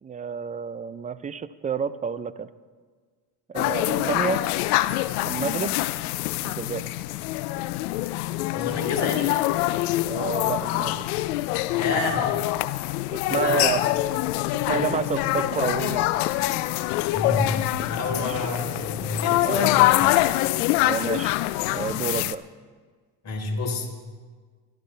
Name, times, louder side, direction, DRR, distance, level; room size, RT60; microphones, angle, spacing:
voice 1, 0.0-2.5 3.5-4.4 5.2-5.8 6.4-6.8 10.0-11.0 13.1-13.8 14.5-16.1 18.1-18.4 19.4-19.7 20.8-21.4 21.7-22.4, right 6 dB, 20° right, 15 dB, 0.5 m, -29 dB
sound 1, 3.6-22.4, left 17 dB, 85° left, 0.6 m, -25 dB
voice 2, 8.5-9.3 11.8-12.2 13.3-13.7 14.7-15.3 17.1-20.0 23.2-23.9, left 3 dB, 40° left, 0 dB, 3.9 m, -29 dB
23.5 x 12.0 x 3.3 m, 1.5 s
supercardioid pair, 90°, 43 cm